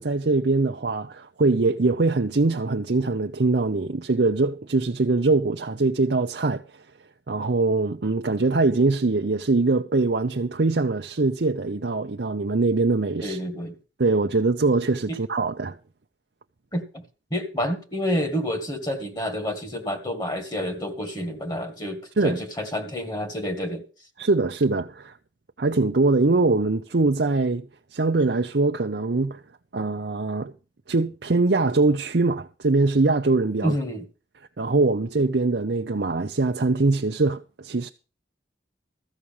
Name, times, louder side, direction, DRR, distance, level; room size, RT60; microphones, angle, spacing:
voice 1, 0.0-6.6 7.3-13.4 14.0-15.8 22.2-22.4 24.2-25.1 25.6-27.7 27.9-29.4 29.7-30.5 30.9-33.8 34.6-37.9, right 3 dB, 65° right, 0.7 m, -22 dB
voice 2, 13.2-13.8 15.1-15.2 16.7-17.0 17.3-23.8 33.6-34.1, equal, 25° left, 1.9 m, -29 dB
14.0 x 6.3 x 7.1 m
head